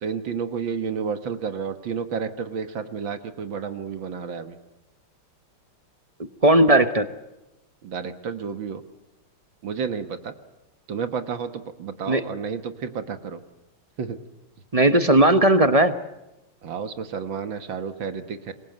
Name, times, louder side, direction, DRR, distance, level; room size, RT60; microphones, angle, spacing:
voice 1, 0.0-4.6 7.8-8.8 9.6-10.3 10.9-13.4 14.0-14.2 16.6-18.5, right 6 dB, 65° right, 10 dB, 2.1 m, -31 dB
voice 2, 6.4-7.1 12.1-12.2 14.7-15.9, right 1 dB, 40° right, 11 dB, 0.5 m, -17 dB
26.5 x 22.0 x 7.9 m, 0.95 s
omnidirectional pair, 2.4 m